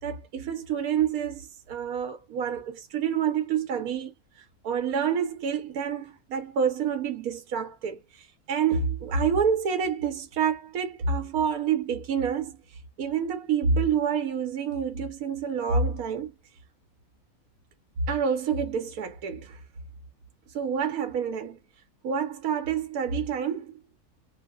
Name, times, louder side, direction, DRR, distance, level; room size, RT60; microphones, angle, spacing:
voice 1, 0.0-16.3 18.1-19.6 20.5-21.6 22.0-23.8, right 6 dB, 85° right, 1.2 m, -28 dB
2.9 x 2.1 x 3.4 m
omnidirectional pair, 1.5 m